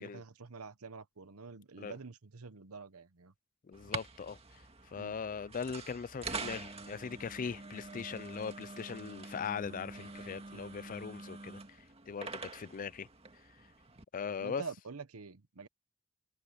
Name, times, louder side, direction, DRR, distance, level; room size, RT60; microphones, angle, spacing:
voice 1, 0.0-3.3 5.0-5.2 10.5-10.6 14.4-15.7, right 4 dB, 90° right, 1.1 m, -47 dB
voice 2, 3.6-13.1 14.1-14.6, left 6 dB, 40° left, 0.4 m, -40 dB
sound 1, 3.7-14.0, right 4 dB, 30° right, 1.9 m, -46 dB
head